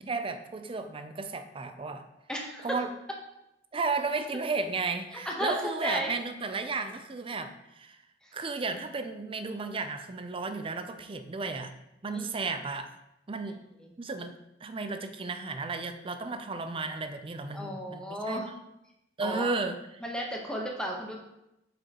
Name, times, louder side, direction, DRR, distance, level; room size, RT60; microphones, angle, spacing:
voice 1, 0.0-2.1 2.6-2.9 3.7-8.0 8.3-11.7 12.0-12.9 13.3-13.6 14.0-14.4 14.6-18.4 19.2-19.8, right 4 dB, 30° right, 8 dB, 0.5 m, -33 dB
voice 2, 2.3-2.8 5.1-6.1 8.2-8.3 12.1-12.3 13.7-13.9 17.5-18.5 19.2-19.5 20.0-21.2, equal, 5° left, -1 dB, 1.1 m, -34 dB
7.8 x 5.1 x 3.0 m, 0.87 s
head